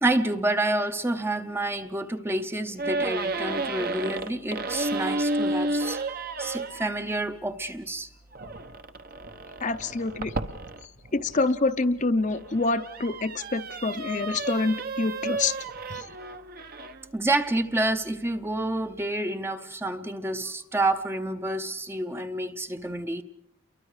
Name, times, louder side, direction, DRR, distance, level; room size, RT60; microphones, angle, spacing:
voice 1, 0.0-6.0 6.4-8.1 17.1-23.2, right 2 dB, 10° right, 0.8 m, -28 dB
sound 1, 2.8-6.9 8.3-11.5 12.1-17.1, right 2 dB, 45° right, 1.0 m, -32 dB
voice 2, 9.6-10.3 11.1-15.6 15.9-16.1, left 3 dB, 35° left, 0.7 m, -26 dB
29.5 x 23.0 x 4.9 m
head